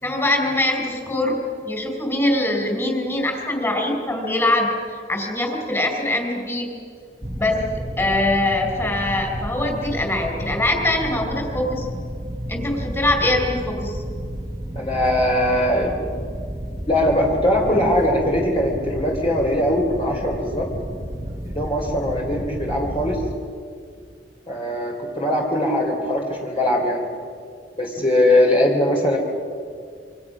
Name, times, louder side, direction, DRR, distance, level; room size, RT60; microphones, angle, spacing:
voice 1, 0.0-1.4 1.7-4.7 5.1-6.7 7.4-7.6 8.0-11.9 12.5-14.0, left 1 dB, 15° left, 2 dB, 4.3 m, -22 dB
sound 1, 7.2-23.4, equal, 20° right, 0.9 m, -32 dB
voice 2, 14.7-16.0 16.9-20.7 21.4-23.2 24.5-27.0 27.8-29.2, left 1 dB, 30° left, -2 dB, 3.3 m, -20 dB
27.5 x 25.5 x 6.2 m, 2.2 s
head